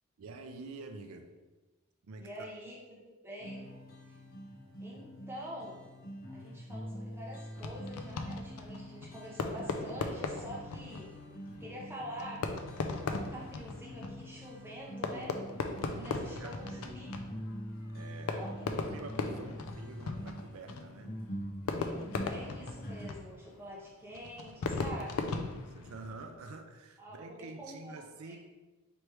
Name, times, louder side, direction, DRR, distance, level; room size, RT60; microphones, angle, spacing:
voice 1, 0.2-1.3 2.0-2.5 15.0-17.0 17.9-21.2 25.3-28.4, right 3 dB, 75° right, 6 dB, 0.4 m, -48 dB
voice 2, 2.2-3.7 4.1-4.2 4.8-5.8 6.3-11.1 11.6-12.5 12.9-15.3 16.0-17.1 18.3-18.5 19.3-19.5 21.8-25.3 27.0-27.9 28.2-28.4, equal, 10° right, -4 dB, 0.9 m, -46 dB
sound 1, 3.4-23.1, equal, 45° left, 0.8 m, -45 dB
Fireworks, 7.6-26.4, left 4 dB, 85° left, 0.4 m, -39 dB
3.2 x 3.0 x 4.5 m, 1.2 s
head